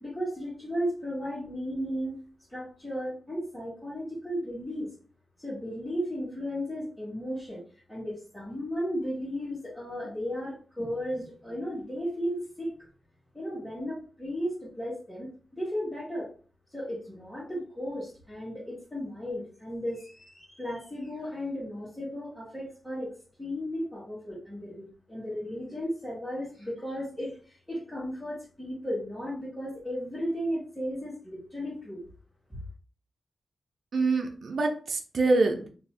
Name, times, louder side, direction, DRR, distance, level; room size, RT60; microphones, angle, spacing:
voice 1, 0.0-2.2 2.5-4.9 5.4-7.6 7.9-12.7 13.3-16.3 16.7-23.1 23.4-32.0 32.5-32.6, equal, 5° left, -9 dB, 1.2 m, -35 dB
voice 2, 33.9-35.7, right 3 dB, 65° right, 3 dB, 0.4 m, -25 dB
2.6 x 2.3 x 3.2 m, 0.40 s
wide cardioid pair, 135°, 0 cm